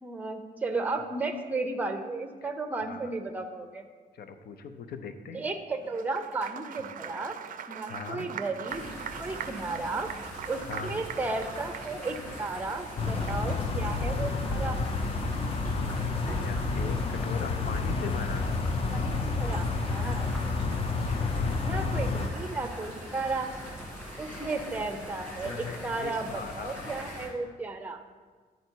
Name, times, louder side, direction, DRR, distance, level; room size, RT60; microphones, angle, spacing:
voice 1, 0.0-3.8 5.3-7.4 7.7-10.1 10.5-14.8 18.9-20.3 20.6-20.7 21.6-23.5 24.2-28.0, right 3 dB, 10° right, 6 dB, 0.5 m, -34 dB
voice 2, 4.1-5.4 7.9-8.3 10.7-11.0 16.2-18.5 21.1-21.6 22.1-22.2 25.4-26.9, left 5 dB, 80° left, 8 dB, 0.6 m, -40 dB
Applause, 5.8-13.6, right 8 dB, 60° right, 0.4 m, -42 dB
sound 1, 8.7-27.3, equal, 10° left, 1.9 m, -42 dB
sound 2, 13.0-22.3, left 3 dB, 35° left, 0.5 m, -29 dB
10.5 x 4.0 x 4.5 m, 1.5 s
wide cardioid pair, 150°, 16 cm